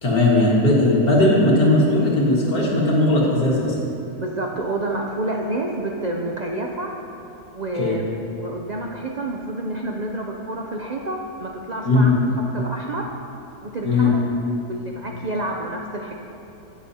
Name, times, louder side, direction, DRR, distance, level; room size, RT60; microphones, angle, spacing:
voice 1, 0.0-3.7 7.7-8.0 11.8-12.1 13.8-14.1, left 2 dB, 85° left, -5 dB, 2.4 m, -18 dB
voice 2, 4.2-6.9 7.5-8.0 8.3-13.1 13.6-14.2 14.7-16.2, right 1 dB, 65° right, 0 dB, 0.4 m, -29 dB
17.5 x 7.2 x 2.8 m, 2.9 s
omnidirectional pair, 1.6 m